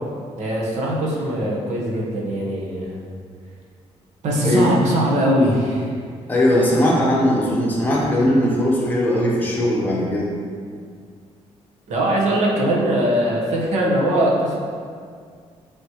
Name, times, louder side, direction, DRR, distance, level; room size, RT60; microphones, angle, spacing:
voice 1, 0.4-3.0 4.2-5.9 11.9-14.6, right 1 dB, 85° right, -3 dB, 1.3 m, -21 dB
voice 2, 6.3-10.3, left 1 dB, 15° left, -5 dB, 1.3 m, -19 dB
7.9 x 4.2 x 3.1 m, 2.1 s
cardioid pair, 140°, 12 cm